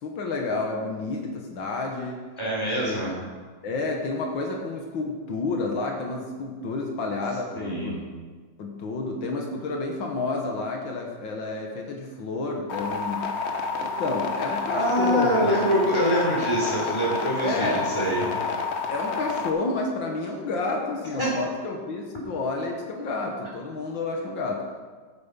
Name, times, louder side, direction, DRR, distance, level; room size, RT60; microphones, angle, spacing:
voice 1, 0.0-2.2 2.9-3.0 3.6-8.0 8.6-13.2 13.8-15.7 17.4-17.9 18.9-24.6, left 3 dB, 85° left, 1 dB, 2.1 m, -30 dB
voice 2, 2.4-3.2 7.6-8.0 14.5-18.3 21.2-21.3, equal, 15° left, -5 dB, 3.9 m, -25 dB
sound 1, 12.7-19.5, left 4 dB, 45° left, 1.0 m, -29 dB
13.0 x 8.6 x 5.5 m, 1.5 s
omnidirectional pair, 2.1 m